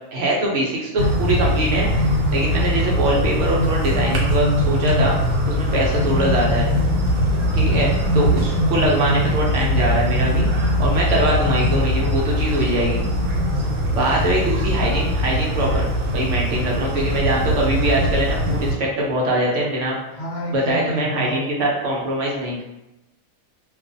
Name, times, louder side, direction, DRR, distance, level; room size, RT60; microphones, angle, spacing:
voice 1, 0.1-5.2 5.5-6.7 7.5-10.5 10.8-13.0 13.8-15.9 16.1-20.0 20.5-22.6, right 1 dB, 70° right, -3 dB, 0.9 m, -22 dB
sound 1, 1.0-18.7, equal, 85° right, 1.1 m, -21 dB
voice 2, 20.1-21.4, equal, 55° left, -4 dB, 0.9 m, -28 dB
2.4 x 2.3 x 2.5 m, 0.92 s
omnidirectional pair, 1.4 m